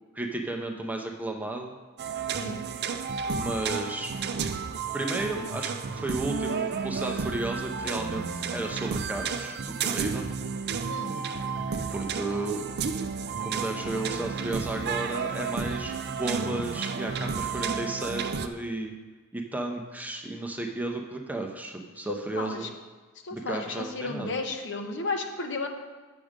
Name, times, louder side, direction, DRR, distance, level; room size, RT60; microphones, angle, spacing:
voice 1, 0.1-1.7 3.4-4.1 4.9-10.3 11.9-12.6 13.4-18.9 19.3-22.7 23.3-24.4, right 2 dB, 5° right, 2 dB, 0.6 m, -33 dB
sound 1, 2.0-18.5, right 5 dB, 50° right, 0.5 m, -32 dB
voice 2, 10.8-11.2 22.1-22.7 23.2-25.7, left 3 dB, 60° left, 4 dB, 0.9 m, -33 dB
7.6 x 6.2 x 5.1 m, 1.3 s
head